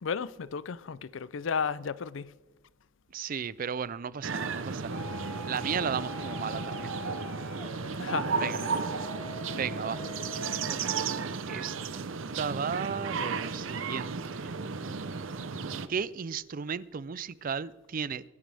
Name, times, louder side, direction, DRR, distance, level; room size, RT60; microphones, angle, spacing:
voice 1, 0.0-2.4 8.0-8.8, left 6 dB, 70° left, 0.5 m, -34 dB
voice 2, 3.1-5.0 5.5-6.9 8.4-8.6 9.5-10.0 11.5-11.8 12.4-14.5 15.9-18.2, right 6 dB, 45° right, 0.4 m, -34 dB
sound 1, 4.2-15.9, right 5 dB, 75° right, 0.7 m, -34 dB
sound 2, 4.9-10.8, left 4 dB, 30° left, 0.8 m, -44 dB
22.5 x 11.5 x 3.4 m
head